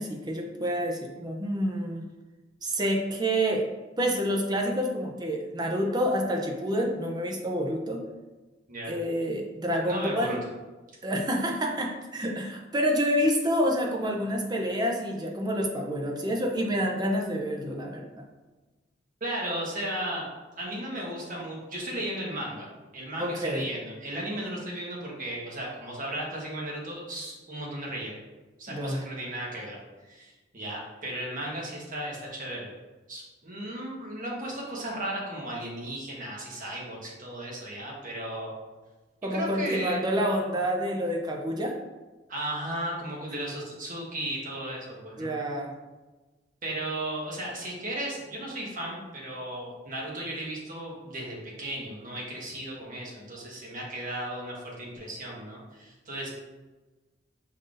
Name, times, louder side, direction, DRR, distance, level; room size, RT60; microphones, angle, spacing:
voice 1, 0.0-2.0 2.6-3.7 4.0-8.0 8.9-10.4 11.0-18.2 23.2-23.6 28.7-29.0 39.2-41.7 45.2-45.7, equal, 20° right, 1 dB, 0.5 m, -28 dB
voice 2, 9.9-10.4 19.2-20.3 20.6-22.7 22.9-28.1 28.6-29.8 30.0-32.7 33.1-38.5 39.3-40.0 42.3-45.4 46.6-56.3, right 1 dB, 45° right, -3 dB, 1.2 m, -35 dB
5.3 x 3.8 x 2.5 m, 1.2 s
head